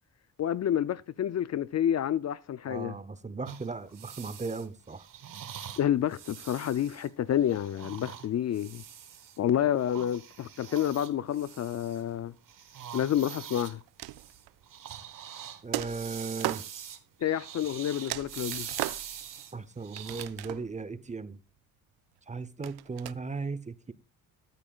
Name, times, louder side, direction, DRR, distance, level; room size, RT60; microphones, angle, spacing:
voice 1, 0.4-2.9 5.8-8.8 9.4-12.3 12.9-13.8 17.2-18.7, left 10 dB, 45° left, 0.4 m, -29 dB
voice 2, 2.7-5.1 15.6-16.7 19.5-21.4 22.3-23.9, right 4 dB, 20° right, 0.7 m, -37 dB
sound 1, 3.5-9.4 9.8-12.2 12.5-20.3, right 9 dB, 60° right, 1.2 m, -44 dB
sound 2, 13.8-14.6 15.7-16.7 17.6-17.7 18.1-19.4 20.0-20.8 22.6-23.1, right 16 dB, 85° right, 0.5 m, -37 dB
13.5 x 8.7 x 2.3 m
cardioid pair, 80°, 36 cm